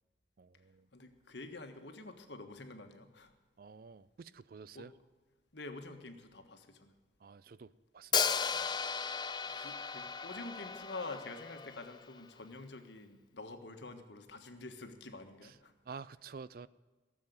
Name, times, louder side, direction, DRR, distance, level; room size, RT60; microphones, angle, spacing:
voice 1, 0.4-0.9 3.6-4.9 7.2-8.7 9.5-9.7 15.4-15.5 15.9-16.7, right 5 dB, 50° right, 18 dB, 0.4 m, -50 dB
voice 2, 0.9-3.3 4.7-4.9 5.5-6.9 9.4-15.7, left 3 dB, 70° left, 6 dB, 1.5 m, -47 dB
Hi-hat, 8.1-12.1, left 6 dB, 25° left, 0.4 m, -35 dB
17.0 x 7.6 x 9.4 m, 1.3 s
head